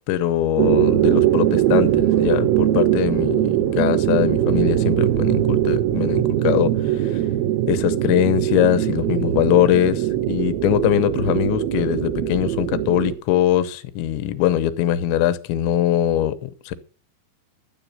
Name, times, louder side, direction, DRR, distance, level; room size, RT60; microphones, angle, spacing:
voice 1, 0.1-7.2 7.7-16.7, left 12 dB, 80° left, 3.1 m, -22 dB
sound 1, 0.6-13.1, right 12 dB, 70° right, 2.6 m, -21 dB
13.0 x 8.0 x 5.5 m
omnidirectional pair, 5.4 m